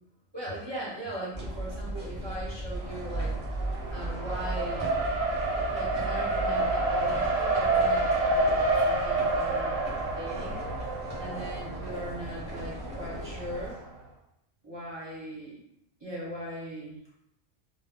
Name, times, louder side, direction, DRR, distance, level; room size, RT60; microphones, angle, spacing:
voice 1, 0.3-3.4 3.9-4.9 5.7-10.6 11.2-13.8 14.6-15.6 16.0-17.0, right 1 dB, 25° right, -6 dB, 0.6 m, -39 dB
sound 1, 1.3-13.7, right 1 dB, 25° left, 0.8 m, -37 dB
Race car auto racing, 2.8-13.8, right 2 dB, 80° right, 1.0 m, -29 dB
2.2 x 2.1 x 3.5 m, 0.78 s
omnidirectional pair, 1.3 m